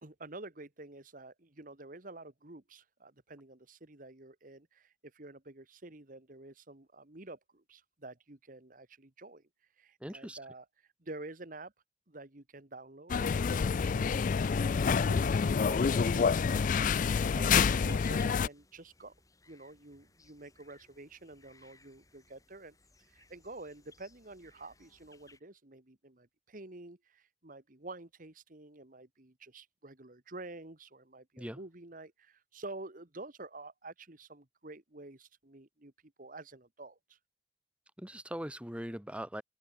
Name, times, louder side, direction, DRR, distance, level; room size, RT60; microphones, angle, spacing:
voice 1, 0.0-9.4 9.8-10.7 11.0-11.7 12.1-14.2 14.6-19.1 19.5-22.8 23.1-37.2, right 2 dB, 45° right, 1.8 m, -49 dB
voice 2, 10.0-10.4 31.4-31.6 38.0-39.4, equal, 5° right, 2.6 m, -40 dB
sound 1, 13.1-18.5, left 6 dB, 45° left, 0.3 m, -28 dB
sound 2, 16.3-25.4, left 3 dB, 20° left, 5.2 m, -62 dB
open air
head